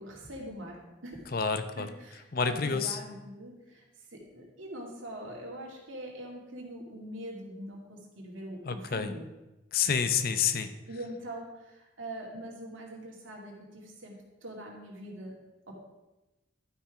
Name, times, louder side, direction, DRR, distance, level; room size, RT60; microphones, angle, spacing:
voice 1, 0.0-1.3 1.8-3.8 4.1-9.3 10.9-15.4 15.7-15.8, right 1 dB, 80° right, -1 dB, 2.4 m, -43 dB
voice 2, 1.3-1.9 2.3-3.0 8.6-9.1 9.7-10.7, left 6 dB, 45° left, 10 dB, 0.6 m, -28 dB
11.5 x 5.8 x 4.9 m, 1.1 s
head